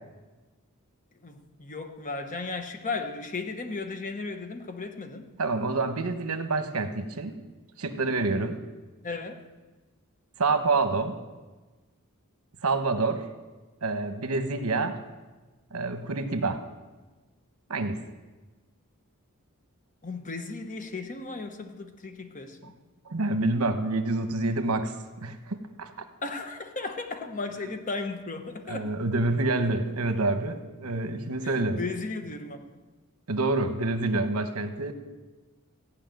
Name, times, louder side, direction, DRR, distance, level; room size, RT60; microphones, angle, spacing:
voice 1, 1.2-5.3 9.0-9.5 20.0-22.7 26.2-28.9 31.4-32.8, left 3 dB, 35° left, 1.0 m, -35 dB
voice 2, 5.4-7.3 7.8-8.6 10.4-11.2 12.6-13.2 13.8-15.0 15.7-16.6 17.7-18.0 23.0-25.0 25.2-25.9 28.7-31.8 33.3-34.9, right 3 dB, 75° right, 1.0 m, -27 dB
15.5 x 5.7 x 9.1 m
head